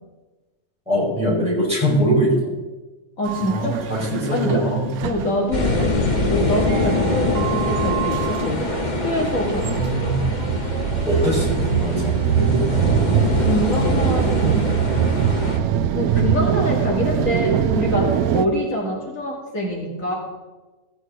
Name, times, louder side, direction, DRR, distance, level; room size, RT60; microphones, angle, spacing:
voice 1, 0.9-2.6 3.4-4.9 9.6-10.3 11.1-12.8, right 1 dB, 5° right, -6 dB, 4.9 m, -22 dB
voice 2, 3.2-3.7 4.3-4.6 5.0-5.9 6.3-8.7 9.0-9.9 13.4-14.6 15.9-20.1, left 1 dB, 65° left, -3 dB, 2.8 m, -25 dB
sound 1, 3.2-18.5, right 9 dB, 85° right, 1.1 m, -23 dB
sound 2, 5.5-15.6, left 2 dB, 35° left, 1.3 m, -24 dB
16.0 x 9.0 x 3.8 m, 1.2 s
omnidirectional pair, 1.5 m